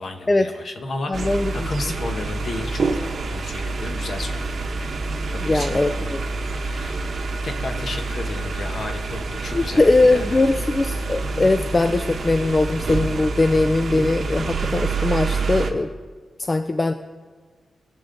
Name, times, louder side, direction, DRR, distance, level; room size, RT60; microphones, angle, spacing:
voice 1, 0.0-4.5 5.4-10.6, left 2 dB, 45° left, 5 dB, 1.1 m, -33 dB
voice 2, 1.1-1.7 5.4-6.2 9.5-15.9 16.4-16.9, left 2 dB, 20° left, 9 dB, 0.3 m, -20 dB
sound 1, 1.1-15.7, right 3 dB, 45° right, 0.9 m, -27 dB
20.0 x 6.9 x 3.9 m, 1.5 s
wide cardioid pair, 175°, 0 cm